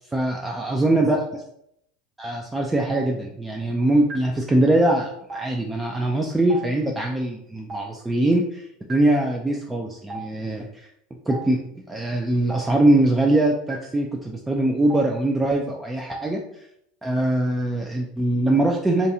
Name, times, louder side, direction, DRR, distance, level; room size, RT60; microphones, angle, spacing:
voice 1, 0.1-1.4 2.2-10.9 11.3-16.4 17.0-19.1, right 1 dB, 15° right, 0 dB, 0.3 m, -22 dB
Stream, 2.9-3.0 4.1-4.2 5.3-5.4 6.5-6.6 7.7-7.8 8.9-9.0 10.1-10.2 11.3-11.4 12.5-12.6 13.7-13.8 14.9-15.0 16.1-16.2, right 2 dB, 35° right, 1.0 m, -34 dB
2.5 x 2.3 x 2.7 m, 0.75 s
hypercardioid pair, 80°, 0 cm